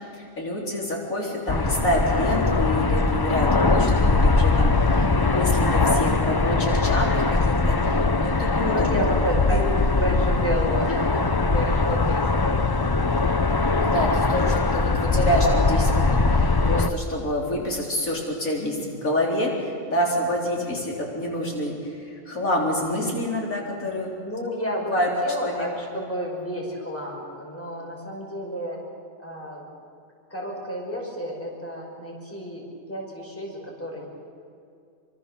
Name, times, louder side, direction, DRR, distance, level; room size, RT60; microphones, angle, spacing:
voice 1, 0.1-8.9 9.5-9.7 13.8-24.1 24.9-25.1 25.4-25.7, left 1 dB, 80° left, -2 dB, 4.3 m, -27 dB
sound 1, 1.5-16.9, left 3 dB, 25° left, 0.5 m, -21 dB
voice 2, 8.7-9.7 9.9-12.6 24.2-28.8 29.2-29.7 30.3-34.1, equal, 10° left, -2 dB, 5.6 m, -31 dB
26.5 x 25.0 x 7.0 m, 2.4 s
omnidirectional pair, 1.4 m